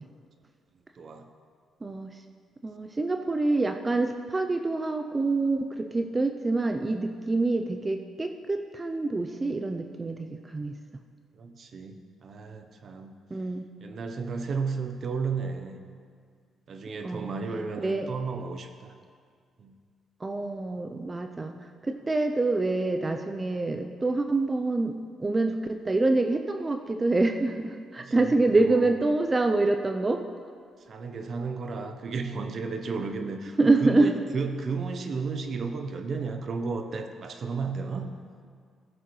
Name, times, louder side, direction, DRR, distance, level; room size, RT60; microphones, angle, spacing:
voice 1, 1.0-1.3 11.3-13.1 13.8-15.8 16.7-18.9 19.6-19.8 28.0-28.9 30.9-38.1, right 4 dB, 50° right, 7 dB, 0.8 m, -33 dB
voice 2, 1.8-2.2 2.6-10.8 13.3-13.7 17.0-17.4 17.8-18.1 20.2-21.6 21.8-30.2 33.6-34.1, right 2 dB, 25° right, 6 dB, 0.5 m, -26 dB
15.0 x 6.9 x 3.2 m, 2.1 s
cardioid pair, 90°, 0 cm